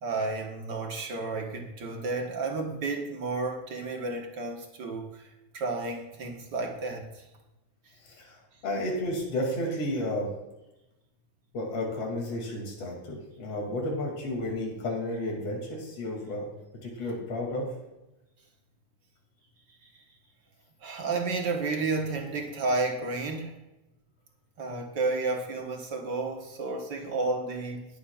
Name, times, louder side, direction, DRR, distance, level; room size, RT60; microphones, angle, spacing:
voice 1, 0.0-5.3 5.5-7.2 19.8-20.0 20.8-23.6 24.6-27.9, right 3 dB, 45° right, 1 dB, 1.5 m, -32 dB
voice 2, 8.6-10.3 11.5-16.5 16.8-17.7, left 1 dB, 55° left, -1 dB, 3.7 m, -32 dB
21.0 x 8.6 x 2.5 m, 0.97 s
omnidirectional pair, 3.4 m